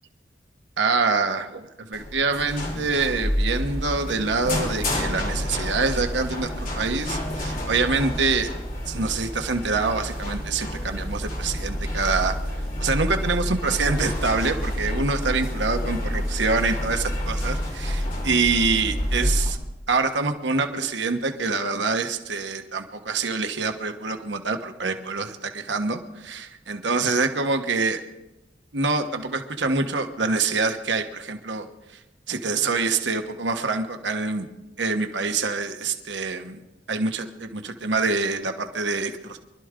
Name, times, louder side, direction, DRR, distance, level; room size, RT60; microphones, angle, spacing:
voice 1, 0.8-8.5 8.9-12.3 12.8-19.6 19.9-28.0 28.7-31.7 32.3-34.5 34.8-36.6 36.9-39.4, right 4 dB, 85° right, 6 dB, 1.2 m, -25 dB
sound 1, 1.9-19.5, equal, 50° left, 3.4 m, -28 dB
25.0 x 12.5 x 3.8 m, 0.98 s
head